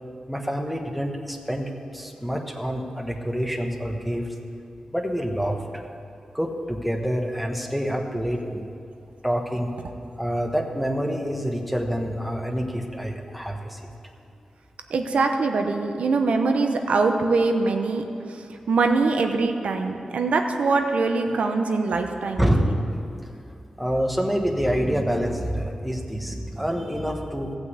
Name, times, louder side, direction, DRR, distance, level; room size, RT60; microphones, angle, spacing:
voice 1, 0.3-4.3 4.9-5.8 6.3-8.7 9.2-9.7 10.2-13.9 22.4-22.7 23.8-27.6, equal, ahead, 2 dB, 1.1 m, -27 dB
voice 2, 14.9-22.5, right 3 dB, 85° right, 4 dB, 0.9 m, -23 dB
15.0 x 5.9 x 8.2 m, 2.6 s
wide cardioid pair, 105°, 2 cm